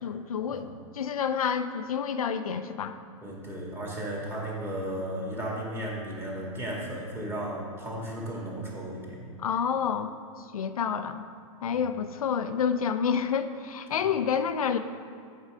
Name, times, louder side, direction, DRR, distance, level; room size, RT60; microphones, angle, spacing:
voice 1, 0.0-3.0 9.4-10.1 10.4-11.2 11.6-14.8, left 7 dB, 85° left, 9 dB, 0.5 m, -29 dB
voice 2, 3.2-9.3 11.7-11.8, right 1 dB, 15° right, -4 dB, 2.1 m, -35 dB
8.3 x 5.5 x 4.9 m, 2.3 s
hypercardioid pair, 125°, 18 cm